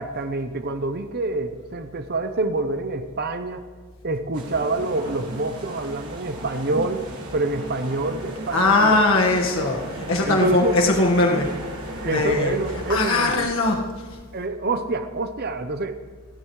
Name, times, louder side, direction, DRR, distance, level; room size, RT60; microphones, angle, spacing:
voice 1, 0.0-3.6 4.0-7.0 7.3-9.0 10.2-10.8 12.0-13.5 14.3-16.0, right 2 dB, 45° right, 9 dB, 0.8 m, -26 dB
sound 1, 4.3-13.0, right 1 dB, 85° right, 2.8 m, -36 dB
voice 2, 8.5-11.6 12.0-12.5 12.9-14.2, left 2 dB, 65° left, 0 dB, 1.7 m, -20 dB
30.0 x 11.5 x 3.2 m, 1.5 s
head